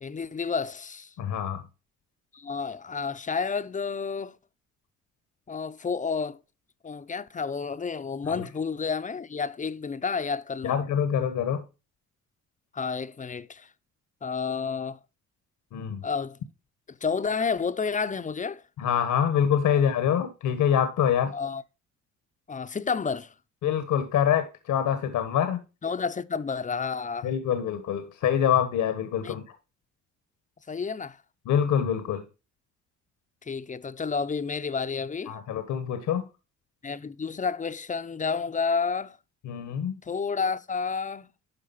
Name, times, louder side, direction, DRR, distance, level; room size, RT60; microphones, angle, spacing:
voice 1, 0.0-1.1 2.3-4.4 5.5-6.4 6.8-10.8 12.7-13.7 14.2-15.0 16.0-16.4 16.9-18.6 19.7-19.8 21.3-21.6 22.5-23.3 25.8-27.3 29.2-29.4 30.7-31.2 33.4-35.4 36.8-39.2 40.0-41.3, left 5 dB, 25° left, 0.7 m, -30 dB
voice 2, 1.2-1.6 8.2-8.5 10.6-11.6 15.7-16.0 18.8-21.3 23.6-25.6 27.2-29.4 31.4-32.2 35.3-36.3 39.4-39.9, left 8 dB, 80° left, 1.3 m, -25 dB
12.0 x 4.8 x 4.1 m
cardioid pair, 90°, 30 cm